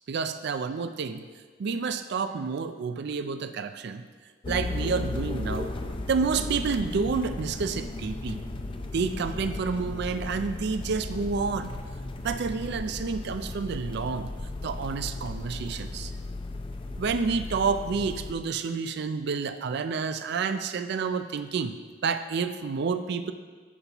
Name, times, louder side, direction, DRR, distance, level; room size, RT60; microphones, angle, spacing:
voice 1, 0.1-1.2 1.6-4.0 4.5-5.7 6.1-8.4 8.9-11.8 12.2-14.3 14.6-16.1 17.0-21.8 22.0-23.3, right 5 dB, 60° right, 10 dB, 0.4 m, -29 dB
sound 1, 4.4-18.3, left 2 dB, 25° left, 0.4 m, -35 dB
9.8 x 5.4 x 2.9 m, 1.5 s
head